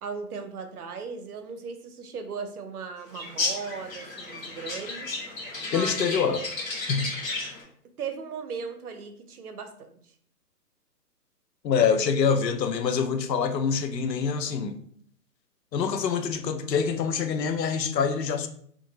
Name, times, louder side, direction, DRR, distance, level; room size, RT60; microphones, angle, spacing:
voice 1, 0.0-5.1 5.6-5.9 8.0-10.0, right 5 dB, 65° right, 0.6 m, -37 dB
sound 1, 3.1-7.6, left 3 dB, 55° left, 1.1 m, -33 dB
voice 2, 5.7-6.4 6.9-7.1 11.6-14.8 15.7-18.5, left 6 dB, 85° left, 0.6 m, -25 dB
2.8 x 2.5 x 2.7 m
hypercardioid pair, 170°, 48 cm